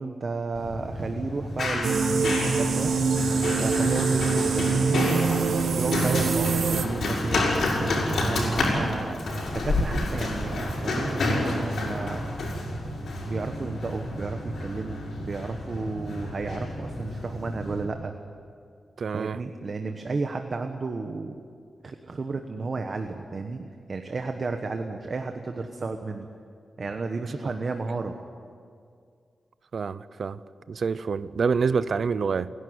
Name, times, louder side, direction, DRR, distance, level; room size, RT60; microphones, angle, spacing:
voice 1, 0.0-2.9 3.6-5.1 5.7-7.4 7.8-9.2 9.5-12.2 13.2-18.1 19.1-21.4 21.8-26.3 26.8-28.1, right 3 dB, 45° right, 6 dB, 1.2 m, -32 dB
Run, 0.5-17.8, left 2 dB, 75° left, 5.6 m, -29 dB
sound 1, 1.8-6.9, right 5 dB, 85° right, 1.4 m, -24 dB
voice 2, 19.0-19.4 29.7-30.4 30.7-32.5, right 5 dB, 60° right, 16 dB, 0.7 m, -27 dB
30.0 x 11.5 x 9.6 m, 2.3 s
wide cardioid pair, 125°, 0 cm